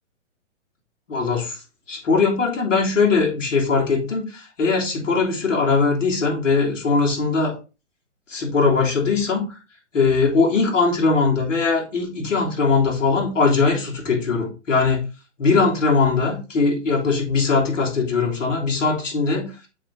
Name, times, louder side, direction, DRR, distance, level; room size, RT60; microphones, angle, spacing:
voice 1, 1.1-1.6 1.9-7.5 8.3-9.6 9.9-15.0 15.4-19.5, left 4 dB, 80° left, -1 dB, 3.0 m, -20 dB
7.7 x 3.9 x 3.8 m, 0.31 s
hypercardioid pair, 135°, 37 cm